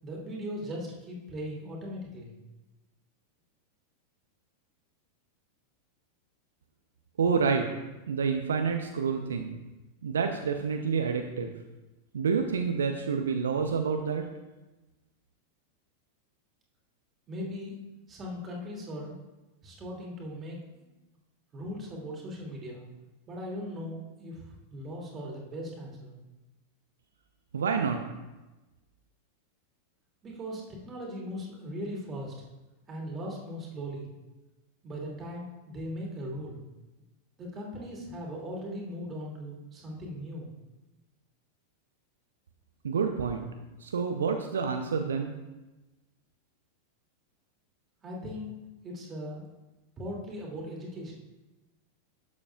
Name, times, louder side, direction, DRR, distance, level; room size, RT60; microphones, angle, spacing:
voice 1, 0.0-2.4 17.3-17.7 18.1-19.2 19.6-20.8 21.5-22.9 23.3-26.2 30.2-32.3 32.9-34.1 34.8-36.6 37.4-40.5 48.0-48.5 48.8-49.5 50.0-51.1, equal, 25° right, -2 dB, 2.7 m, -39 dB
voice 2, 7.2-7.7 8.1-9.6 10.0-11.5 12.1-14.2 27.5-28.0 42.8-43.5 43.8-45.3, right 5 dB, 65° right, 5 dB, 0.7 m, -28 dB
11.5 x 8.4 x 2.5 m, 1.1 s
figure-of-eight pair, 90°, 0 cm